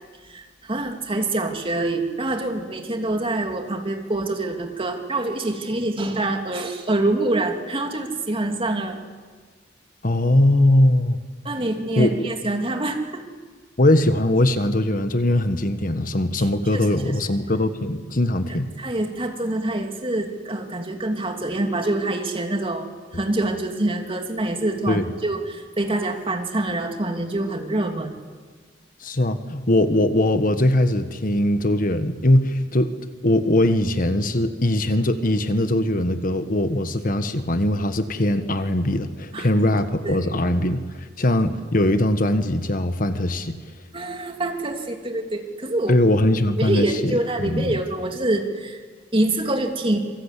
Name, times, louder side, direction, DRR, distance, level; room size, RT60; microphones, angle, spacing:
voice 1, 0.2-9.0 11.4-13.2 16.7-16.9 18.8-22.9 23.1-28.1 39.3-39.5 40.0-40.3 43.9-46.0 46.6-48.8 49.1-50.0, right 2 dB, 30° right, 4 dB, 2.9 m, -25 dB
voice 2, 10.0-11.2 12.0-12.3 13.8-18.7 24.9-25.0 29.0-33.0 33.2-40.8 41.2-43.6 45.9-47.8, left 1 dB, 50° left, 9 dB, 1.4 m, -21 dB
27.5 x 24.0 x 8.4 m, 1.5 s
head